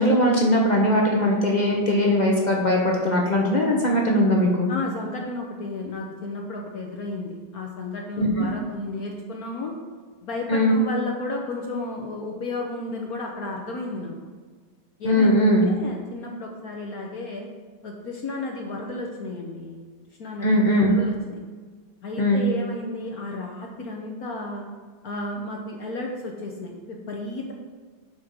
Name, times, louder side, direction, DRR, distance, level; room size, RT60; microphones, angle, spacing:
voice 1, 0.0-4.7 8.2-8.5 10.5-10.7 15.0-15.7 20.4-20.9 22.2-22.4, left 1 dB, 40° left, -1 dB, 0.6 m, -20 dB
voice 2, 4.7-9.7 10.2-14.1 15.0-17.5 17.8-19.8 20.2-21.4 22.0-24.7 25.0-27.5, left 2 dB, 60° left, 0 dB, 1.1 m, -33 dB
5.9 x 4.9 x 6.5 m, 1.5 s
omnidirectional pair, 2.1 m